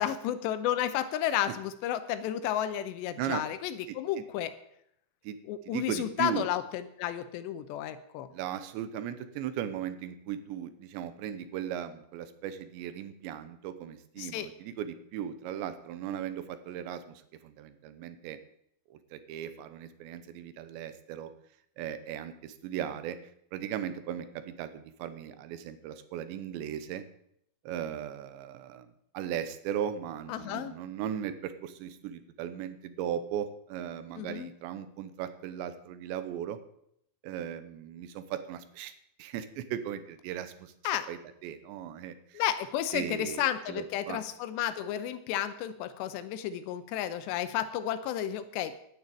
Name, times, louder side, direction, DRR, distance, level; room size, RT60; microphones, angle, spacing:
voice 1, 0.0-4.5 5.5-8.3 14.2-14.5 30.3-30.7 34.2-34.5 40.8-41.1 42.3-48.8, left 11 dB, 85° left, 12 dB, 2.9 m, -32 dB
voice 2, 5.7-6.5 8.3-18.4 18.9-21.3 21.8-23.2 23.5-27.1 27.7-28.9 29.1-36.6 37.2-38.9 39.2-40.7 41.1-42.4 42.9-44.2, right 9 dB, 80° right, 11 dB, 3.2 m, -37 dB
10.5 x 9.3 x 8.7 m, 0.74 s
omnidirectional pair, 5.1 m